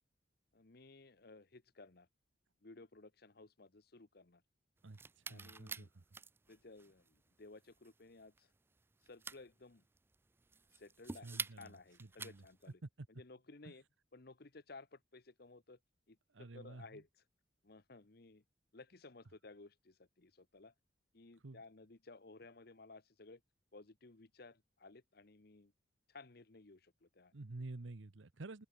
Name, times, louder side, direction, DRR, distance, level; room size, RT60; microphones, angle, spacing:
voice 1, 0.5-2.1 2.6-4.4 5.3-5.9 6.5-8.5 9.0-9.8 10.7-12.8 13.1-13.8 14.1-15.8 16.1-17.1 17.6-18.4 18.7-20.7 21.1-23.4 23.7-25.7 26.1-27.3, left 3 dB, 55° left, 1.1 m, -57 dB
sound 1, 4.8-12.7, right 4 dB, 10° right, 0.3 m, -49 dB
voice 2, 4.8-6.0 11.2-12.4 12.8-13.1 13.6-13.7 16.3-17.0 21.4-21.6 27.3-28.7, right 2 dB, 90° right, 0.9 m, -50 dB
open air
head